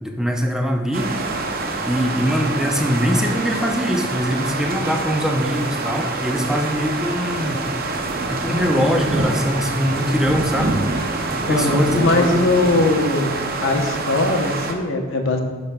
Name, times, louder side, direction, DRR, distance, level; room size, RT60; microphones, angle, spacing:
voice 1, 0.0-1.2 1.8-8.0 8.3-10.8 11.4-12.4, equal, 5° right, 2 dB, 0.5 m, -22 dB
sound 1, 0.9-14.7, right 3 dB, 45° right, 0.6 m, -26 dB
voice 2, 11.5-13.3 13.6-15.4, left 2 dB, 70° left, 3 dB, 0.8 m, -20 dB
11.5 x 5.2 x 2.2 m, 1.4 s
head